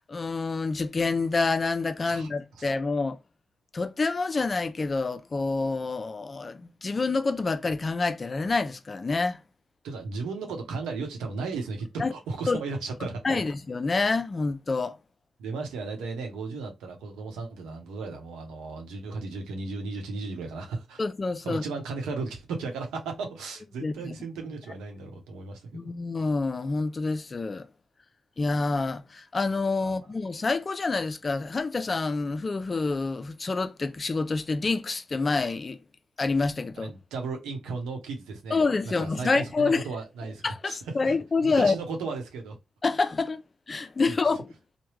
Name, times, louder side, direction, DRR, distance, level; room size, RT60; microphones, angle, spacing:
voice 1, 0.0-3.2 3.7-9.4 12.0-12.1 12.5-12.6 13.2-15.0 21.0-21.6 23.8-24.1 25.7-27.7 28.4-35.8 36.2-36.9 38.5-39.8 40.4-41.8 42.8-43.4 43.7-44.5, left 3 dB, 40° left, 0.5 m, -27 dB
voice 2, 9.8-13.4 15.4-21.0 21.4-25.9 29.8-30.0 36.8-41.1 41.4-42.6 44.1-44.2, right 4 dB, 85° right, 0.9 m, -35 dB
3.3 x 2.2 x 3.1 m
hypercardioid pair, 40°, 0 cm